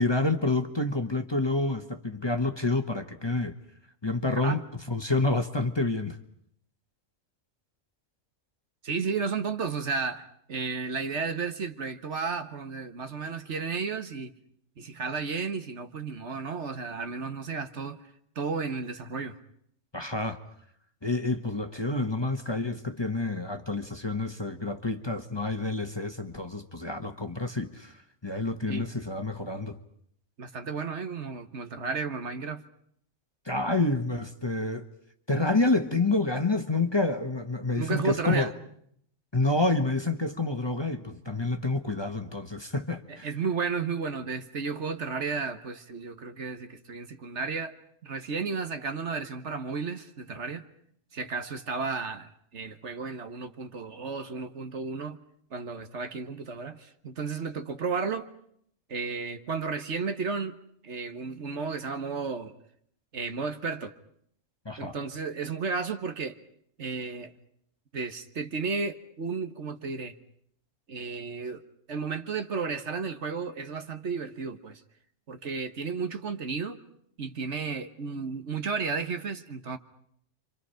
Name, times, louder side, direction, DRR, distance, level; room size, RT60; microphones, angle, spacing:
voice 1, 0.0-3.5 4.0-4.6 4.9-6.2 19.9-20.4 21.0-27.9 28.2-29.8 33.4-34.9 35.3-38.5 39.3-43.3 64.6-65.0, left 2 dB, 20° left, 1.3 m, -28 dB
voice 2, 8.8-14.3 14.8-18.0 18.4-19.4 28.7-28.9 30.4-32.6 37.8-38.5 43.1-47.8 48.0-50.6 51.1-55.2 55.5-58.3 58.9-60.6 60.8-62.5 63.1-63.9 64.8-66.4 66.8-67.3 67.9-70.2 70.9-71.6 71.9-74.8 75.3-76.8 77.2-79.8, right 5 dB, 65° right, 1.7 m, -33 dB
29.5 x 25.5 x 5.7 m
omnidirectional pair, 1.3 m